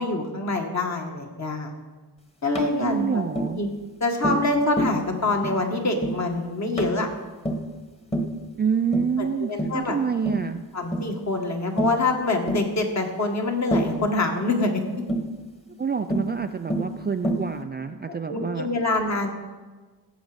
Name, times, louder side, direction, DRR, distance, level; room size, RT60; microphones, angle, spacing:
voice 1, 0.0-1.7 2.4-3.2 3.6-3.7 4.0-7.1 9.2-10.0 10.7-14.8 18.1-19.3, left 2 dB, 40° left, 2 dB, 1.9 m, -25 dB
Tap, 2.5-2.7 3.4-3.6 4.2-4.5 4.8-5.0 5.4-5.6 6.0-6.2 6.8-7.0 7.4-7.7 8.1-8.4 8.9-9.2 9.6-9.8 10.3-10.5 10.9-11.1 11.8-12.0 12.5-12.7 13.7-14.0 15.1-15.3 16.1-16.3 16.7-16.9 17.2-17.5, right 1 dB, 15° left, 1.5 m, -27 dB
voice 2, 2.8-3.6 8.6-10.6 15.7-18.7, right 6 dB, 25° right, 7 dB, 0.4 m, -27 dB
17.0 x 7.4 x 5.2 m, 1.3 s
cardioid pair, 115°, 42 cm